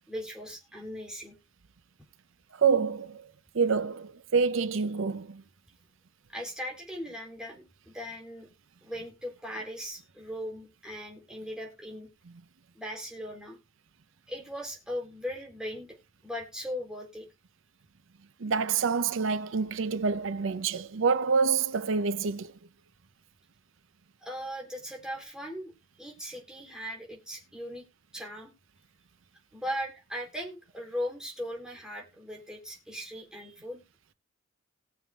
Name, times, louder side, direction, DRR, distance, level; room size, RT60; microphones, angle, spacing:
voice 1, 0.1-1.4 6.3-8.5 8.8-12.1 12.7-13.6 14.3-16.0 16.2-17.3 24.2-25.7 26.0-27.8 28.1-28.5 29.5-33.8, equal, 5° right, 3.7 m, -38 dB
voice 2, 2.6-3.3 3.5-5.4 18.4-22.5, right 5 dB, 80° right, 0.6 m, -27 dB
19.5 x 7.1 x 2.4 m
head